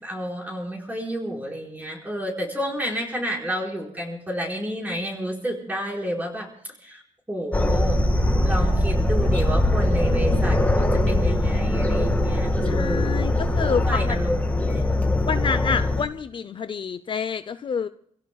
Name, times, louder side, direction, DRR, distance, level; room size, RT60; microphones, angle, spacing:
voice 1, 0.0-6.5 6.8-7.0 7.3-8.0 8.4-13.3 13.8-14.9, equal, 15° right, -1 dB, 4.8 m, -30 dB
sound 1, 7.5-16.0, left 1 dB, 10° left, 1.7 m, -21 dB
voice 2, 12.6-14.2 15.3-17.9, left 6 dB, 40° left, 12 dB, 0.6 m, -28 dB
29.5 x 16.5 x 2.3 m, 0.65 s
cardioid pair, 120°, 12 cm